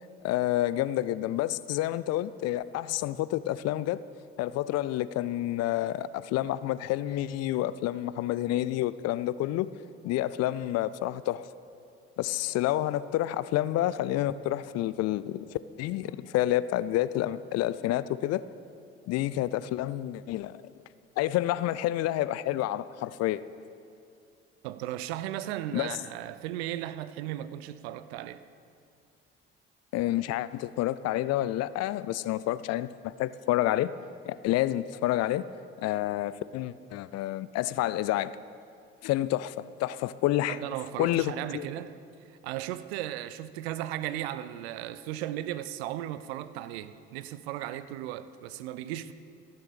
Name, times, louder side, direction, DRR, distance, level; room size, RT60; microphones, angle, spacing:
voice 1, 0.2-4.0 4.4-9.7 10.0-11.5 12.2-18.5 19.1-20.6 21.2-23.4 25.7-26.0 29.9-33.9 34.3-35.5 35.8-38.4 39.0-40.6 41.0-41.7, left 14 dB, 50° left, 0.5 m, -29 dB
voice 2, 24.6-28.4 40.5-42.0 42.4-49.1, right 13 dB, 75° right, 0.5 m, -36 dB
14.5 x 6.9 x 6.3 m
hypercardioid pair, 55°, 32 cm